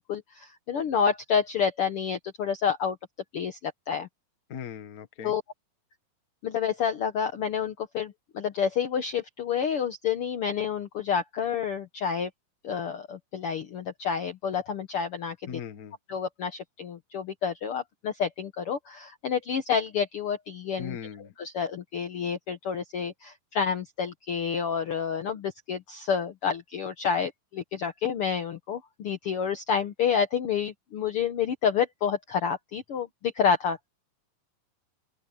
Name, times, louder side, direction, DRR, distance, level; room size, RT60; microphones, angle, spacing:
voice 1, 0.0-3.0 3.3-4.1 5.2-5.4 6.4-12.3 12.6-15.5 16.1-21.0 21.4-33.8, left 7 dB, 90° left, 1.2 m, -29 dB
voice 2, 4.5-5.3 15.5-16.0 20.8-21.3, left 7 dB, 65° left, 0.8 m, -39 dB
open air
omnidirectional pair, 4.2 m